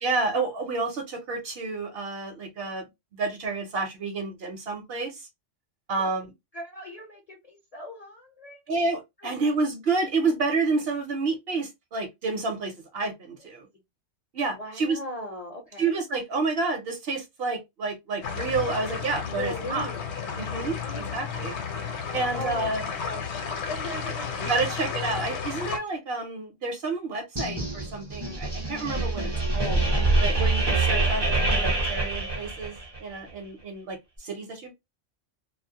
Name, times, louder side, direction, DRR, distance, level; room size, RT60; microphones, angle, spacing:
voice 1, 0.0-2.9 3.1-5.3 5.9-6.3 8.7-13.7 14.3-15.0 15.8-19.9 20.4-21.5 22.1-22.9 24.4-29.8 30.2-32.8 33.0-34.7, right 3 dB, 60° right, 0.9 m, -29 dB
voice 2, 6.5-8.9 9.2-9.5 13.4-13.5 14.5-16.0 19.3-20.0 20.8-21.2 22.3-22.7 23.0-24.4, left 1 dB, 40° left, 0.6 m, -39 dB
sound 1, 18.2-25.8, left 6 dB, 70° left, 0.9 m, -33 dB
sound 2, 27.4-33.0, right 2 dB, 30° right, 0.5 m, -25 dB
2.3 x 2.1 x 2.6 m
omnidirectional pair, 1.3 m